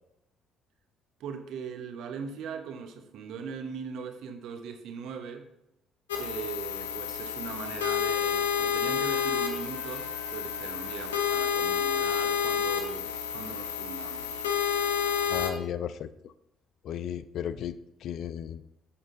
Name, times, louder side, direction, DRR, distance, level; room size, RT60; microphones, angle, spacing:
voice 1, 1.2-5.5 6.2-14.5, right 6 dB, 65° right, 6 dB, 1.1 m, -40 dB
sound 1, 6.1-15.5, left 7 dB, 85° left, 0.8 m, -30 dB
Trumpet, 9.1-11.4, right 2 dB, 5° right, 1.5 m, -49 dB
voice 2, 15.3-16.3 16.8-18.6, left 9 dB, 60° left, 14 dB, 0.4 m, -35 dB
8.6 x 7.2 x 3.8 m, 0.84 s
hypercardioid pair, 50°, 0 cm